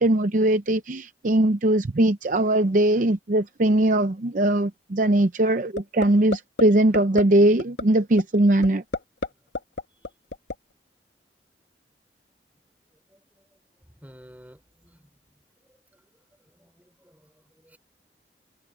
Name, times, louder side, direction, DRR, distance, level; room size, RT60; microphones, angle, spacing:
voice 1, 0.0-8.8, right 1 dB, 45° right, 0.7 m, -20 dB
sound 1, 5.8-6.1 6.3-6.6 6.9-7.2 7.6-7.8 8.2-8.3 8.6-9.3 9.5-10.5, left 2 dB, 80° left, 1.4 m, -28 dB
voice 2, 13.1-13.4 14.0-15.1 15.7-15.8 16.5-17.8, equal, 10° right, 4.5 m, -53 dB
head